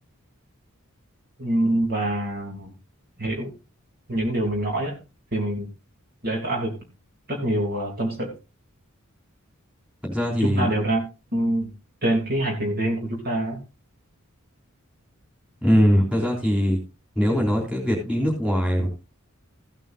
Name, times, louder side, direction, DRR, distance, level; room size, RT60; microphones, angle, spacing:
voice 1, 1.4-2.7 3.2-3.5 4.1-4.9 5.3-5.7 6.2-6.7 7.3-8.3 10.4-11.0 11.3-11.7 12.0-13.6, right 1 dB, 45° right, 0 dB, 3.2 m, -25 dB
voice 2, 10.0-10.7 15.6-16.8 17.2-18.9, equal, 5° right, -3 dB, 3.6 m, -21 dB
16.0 x 9.1 x 2.7 m, 0.30 s
head